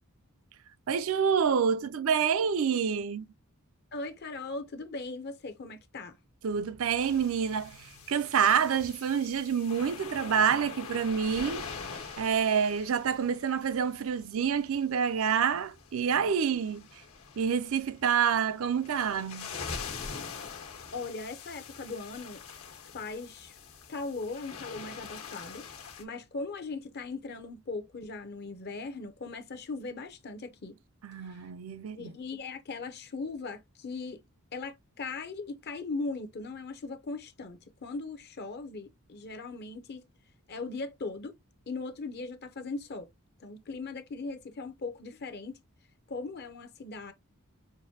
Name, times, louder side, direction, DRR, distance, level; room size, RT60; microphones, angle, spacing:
voice 1, 0.9-3.3 6.4-11.7 12.2-16.8 17.4-19.5 31.0-32.1, right 7 dB, 65° right, 0.4 m, -27 dB
voice 2, 3.9-6.2 20.9-22.4 22.9-23.6 23.9-25.6 26.0-30.8 31.3-31.4 31.9-34.2 34.5-40.1 40.5-41.3 41.7-43.1 43.4-45.6 46.1-47.1, left 3 dB, 50° left, 0.7 m, -39 dB
sound 1, 7.0-26.0, left 5 dB, 80° left, 1.3 m, -44 dB
sound 2, 11.1-14.2, right 2 dB, 85° right, 1.2 m, -54 dB
5.9 x 2.6 x 2.7 m
head